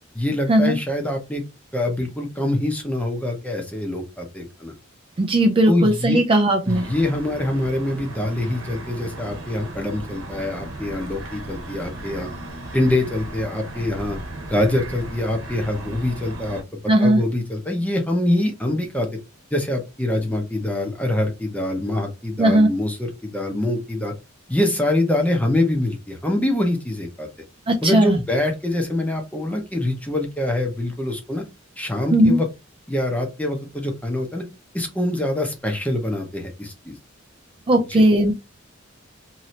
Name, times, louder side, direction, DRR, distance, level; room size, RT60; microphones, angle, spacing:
voice 1, 0.1-1.4 1.7-4.7 5.7-6.2 6.7-12.3 12.7-14.2 14.5-19.1 19.5-24.1 24.5-27.3 27.8-31.4 31.8-32.5 32.9-34.4 34.7-37.0 37.9-38.0, left 1 dB, 5° left, 3 dB, 0.7 m, -24 dB
voice 2, 5.2-6.9 16.9-17.2 22.4-22.7 27.7-28.2 32.1-32.4 37.7-38.3, right 1 dB, 25° right, 5 dB, 0.4 m, -17 dB
sound 1, 6.7-16.6, right 1 dB, 80° right, 0.9 m, -36 dB
2.8 x 2.7 x 3.1 m, 0.25 s
head